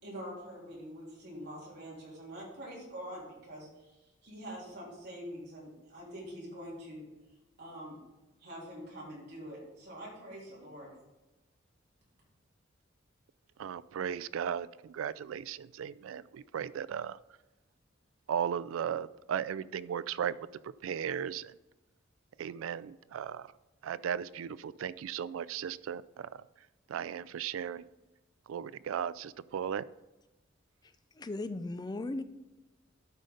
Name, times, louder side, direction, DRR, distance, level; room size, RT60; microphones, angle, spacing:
voice 1, 0.0-4.0 4.2-7.0 7.6-7.9 8.4-10.9, equal, 60° right, -5 dB, 3.3 m, -45 dB
voice 2, 13.6-17.2 18.3-20.4 20.6-21.6 22.4-23.5 23.8-26.5 26.9-27.9 28.5-29.9, right 8 dB, 90° right, 18 dB, 0.3 m, -36 dB
voice 3, 30.8-32.2, left 2 dB, 20° left, 11 dB, 0.4 m, -37 dB
12.0 x 5.1 x 3.8 m, 1.0 s
head